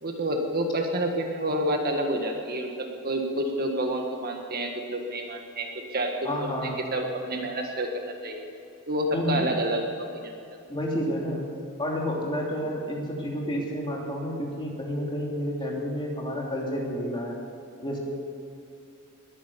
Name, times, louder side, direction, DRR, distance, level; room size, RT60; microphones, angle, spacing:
voice 1, 0.0-8.5 8.9-10.4, right 1 dB, 45° right, 3 dB, 1.6 m, -29 dB
voice 2, 6.2-6.8 9.1-9.4 10.7-11.4 11.8-17.4 17.8-18.0, equal, 20° left, -2 dB, 2.9 m, -30 dB
21.0 x 10.0 x 6.9 m, 2.7 s
head